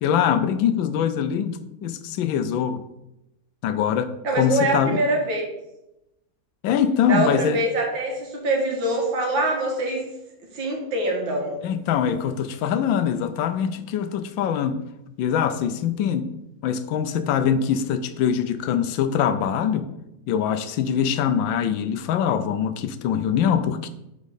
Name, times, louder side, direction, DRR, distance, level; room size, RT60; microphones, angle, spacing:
voice 1, 0.0-2.8 3.6-4.1 4.4-5.0 6.6-7.6 11.6-14.8 15.2-16.3 16.6-19.9 20.3-23.9, left 8 dB, 80° left, 11 dB, 1.3 m, -23 dB
voice 2, 4.2-5.4 7.1-10.1 10.5-11.6, right 1 dB, 75° right, 0 dB, 2.4 m, -24 dB
8.0 x 5.1 x 4.2 m, 0.89 s
omnidirectional pair, 2.1 m